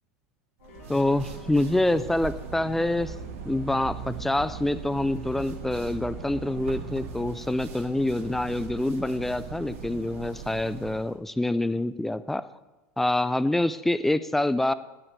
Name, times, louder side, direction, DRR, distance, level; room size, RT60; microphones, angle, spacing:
sound 1, 0.6-6.6, left 5 dB, 85° left, 2.6 m, -51 dB
sound 2, 0.6-11.1, right 6 dB, 80° right, 2.1 m, -39 dB
voice 1, 0.9-3.1 3.4-12.4 13.0-14.7, left 1 dB, 5° left, 15 dB, 0.3 m, -26 dB
11.0 x 8.9 x 6.6 m, 1.1 s
supercardioid pair, 160°, 7 cm